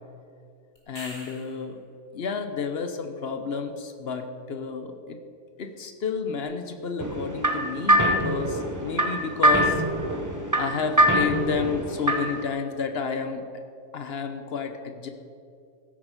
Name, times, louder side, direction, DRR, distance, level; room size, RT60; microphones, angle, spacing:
sound 1, 0.8-1.7 6.4-6.5, equal, 20° left, 2.5 m, -43 dB
voice 1, 0.9-1.8 2.1-5.2 5.6-9.8 10.6-13.5 13.9-15.1, left 5 dB, 45° left, 6 dB, 0.9 m, -31 dB
sound 2, 7.0-12.4, right 1 dB, 15° right, 0.8 m, -23 dB
15.5 x 8.7 x 5.2 m, 2.5 s
omnidirectional pair, 1.8 m